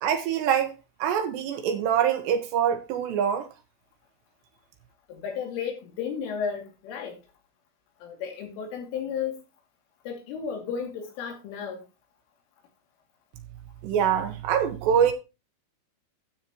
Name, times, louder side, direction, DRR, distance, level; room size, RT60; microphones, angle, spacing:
voice 1, 0.0-3.5 13.8-15.1, right 8 dB, 75° right, 2.8 m, -24 dB
voice 2, 5.1-7.2 8.0-9.4 10.0-11.8, left 7 dB, 80° left, 5.0 m, -33 dB
12.5 x 8.9 x 3.0 m
omnidirectional pair, 5.6 m